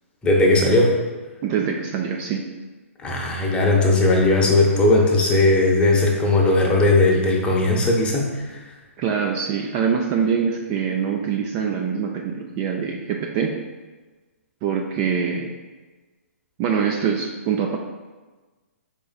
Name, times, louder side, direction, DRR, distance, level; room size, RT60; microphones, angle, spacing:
voice 1, 0.2-1.0 3.0-8.6, left 2 dB, 15° left, -1 dB, 0.7 m, -18 dB
voice 2, 1.4-2.4 9.0-13.5 14.6-15.5 16.6-17.8, right 7 dB, 30° right, 2 dB, 0.3 m, -24 dB
4.8 x 3.9 x 2.3 m, 1.3 s
hypercardioid pair, 135°, 8 cm